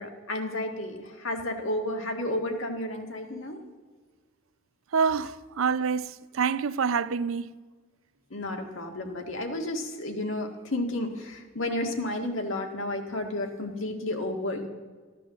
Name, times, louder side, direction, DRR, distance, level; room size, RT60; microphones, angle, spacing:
voice 1, 0.0-3.6 8.3-14.7, left 1 dB, 75° left, 1.8 m, -32 dB
voice 2, 4.9-7.5, right 6 dB, 85° right, 0.5 m, -27 dB
14.0 x 10.5 x 7.4 m
head